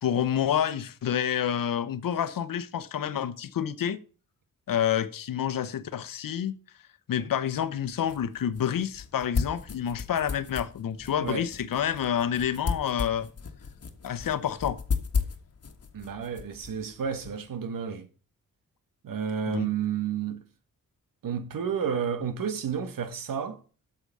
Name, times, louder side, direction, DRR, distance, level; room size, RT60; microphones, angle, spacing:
voice 1, 0.0-4.0 4.7-6.6 7.1-13.3 14.0-14.8 19.5-19.7, left 9 dB, 85° left, 1.0 m, -28 dB
sound 1, 7.6-17.5, left 5 dB, 50° left, 1.6 m, -35 dB
voice 2, 15.9-18.1 19.0-20.4 21.2-23.6, right 7 dB, 80° right, 1.5 m, -31 dB
8.3 x 6.9 x 6.7 m
wide cardioid pair, 105°, 33 cm